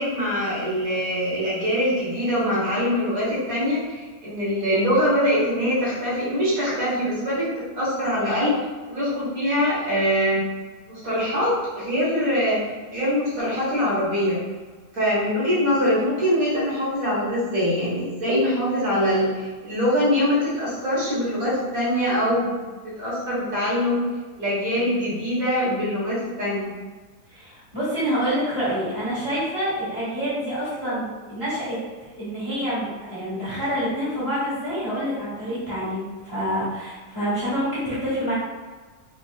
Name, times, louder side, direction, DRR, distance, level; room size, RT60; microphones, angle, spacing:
voice 1, 0.0-7.5 7.8-8.6 8.9-10.4 10.9-14.4 14.9-22.6 23.0-24.0 24.3-26.7, equal, 60° right, -9 dB, 1.7 m, -23 dB
voice 2, 27.3-31.7 32.1-38.3, equal, 20° left, -11 dB, 1.3 m, -27 dB
4.2 x 2.9 x 2.3 m, 1.3 s
omnidirectional pair, 1.8 m